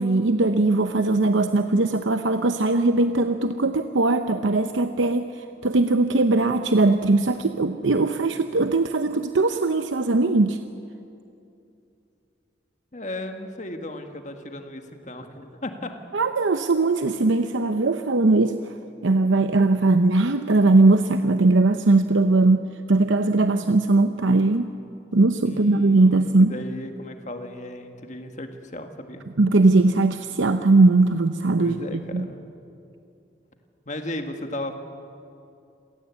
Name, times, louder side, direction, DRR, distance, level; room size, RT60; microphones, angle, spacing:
voice 1, 0.0-10.6 16.1-18.5 19.0-24.7 25.1-26.5 29.4-32.3, right 2 dB, 85° right, 8 dB, 0.8 m, -20 dB
voice 2, 12.9-15.9 25.4-29.2 31.6-32.4 33.9-34.7, left 1 dB, 40° left, 6 dB, 1.8 m, -35 dB
27.0 x 17.5 x 8.3 m, 2.6 s
head